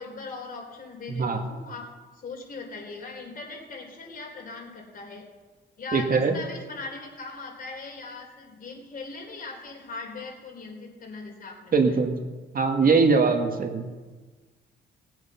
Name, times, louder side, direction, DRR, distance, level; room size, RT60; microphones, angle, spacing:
voice 1, 0.0-1.9 2.1-5.3 5.8-11.7, left 3 dB, 45° left, 1 dB, 4.0 m, -39 dB
voice 2, 1.1-1.4 5.9-6.4 11.7-12.2 12.5-13.9, right 4 dB, 45° right, 4 dB, 1.8 m, -21 dB
20.0 x 8.0 x 5.8 m, 1.3 s
cardioid pair, 90°, 20 cm